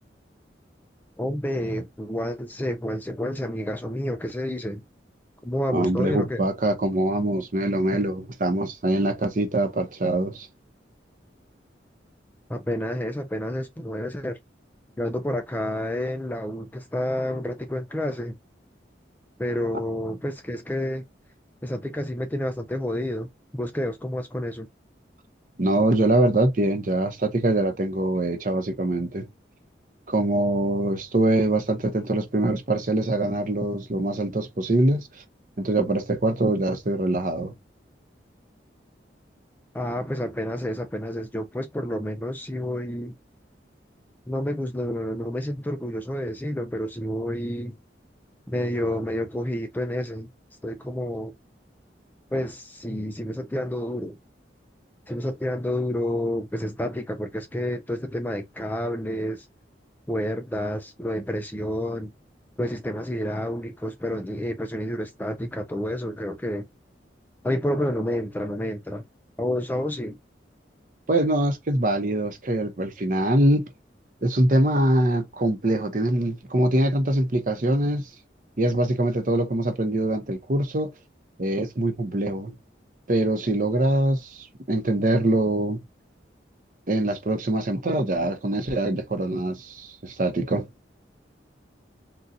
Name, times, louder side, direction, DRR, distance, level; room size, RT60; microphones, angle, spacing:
voice 1, 1.2-4.8 5.4-6.4 12.5-14.4 15.0-18.4 19.4-21.0 21.6-23.3 23.5-24.7 39.7-43.1 44.3-47.8 48.5-50.3 50.6-51.3 52.3-54.2 55.1-59.5 60.1-62.1 62.6-66.7 67.4-69.0 69.4-70.2, left 1 dB, 10° left, 0.3 m, -29 dB
voice 2, 5.7-10.5 25.6-29.3 30.1-35.1 35.6-37.5 71.1-73.6 74.2-78.1 78.6-80.9 81.4-82.5 83.1-85.8 86.9-90.7, right 1 dB, 45° right, 0.7 m, -23 dB
3.9 x 2.3 x 2.6 m
head